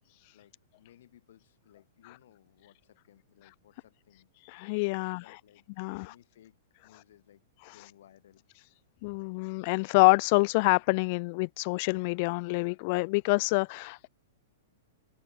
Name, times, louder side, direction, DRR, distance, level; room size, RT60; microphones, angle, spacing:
voice 1, 0.3-4.3 4.7-8.5, left 11 dB, 65° left, 5.5 m, -60 dB
voice 2, 4.4-5.4 5.8-6.1 7.7-7.8 9.0-14.1, left 28 dB, 50° left, 0.4 m, -27 dB
hypercardioid pair, 105°, 0 cm